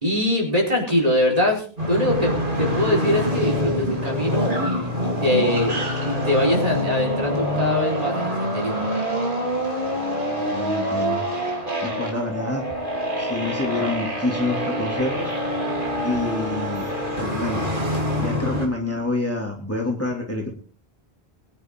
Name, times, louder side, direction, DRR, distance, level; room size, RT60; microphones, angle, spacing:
voice 1, 0.0-8.9, left 1 dB, 35° right, -1 dB, 4.7 m, -23 dB
sound 1, 1.8-18.7, equal, 55° right, 3.7 m, -25 dB
voice 2, 10.3-11.2 11.8-12.6 13.2-15.3 16.0-17.6 18.2-20.5, left 2 dB, 15° left, -1 dB, 2.8 m, -27 dB
22.5 x 10.0 x 3.8 m, 0.42 s
omnidirectional pair, 1.0 m